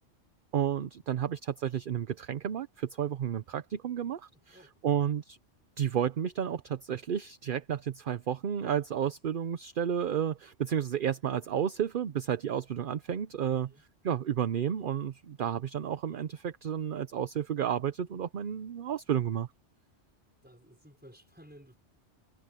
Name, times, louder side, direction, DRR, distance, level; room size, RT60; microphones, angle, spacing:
voice 1, 0.5-4.6 4.8-5.4 5.8-13.7 14.0-19.5, right 9 dB, 50° right, 0.8 m, -31 dB
voice 2, 4.3-4.9 13.5-13.8 20.4-21.8, equal, 10° right, 5.0 m, -56 dB
omnidirectional pair, 1.2 m